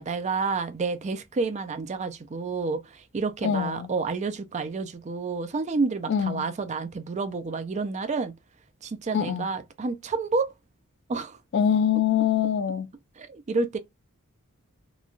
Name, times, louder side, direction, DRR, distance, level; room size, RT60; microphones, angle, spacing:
voice 1, 0.0-8.3 8.8-10.5 11.1-11.4 13.2-13.8, right 4 dB, 30° right, 0.4 m, -29 dB
voice 2, 3.4-3.9 6.1-6.5 9.1-9.5 11.5-12.9, left 8 dB, 55° left, 0.4 m, -24 dB
3.0 x 2.2 x 2.5 m
head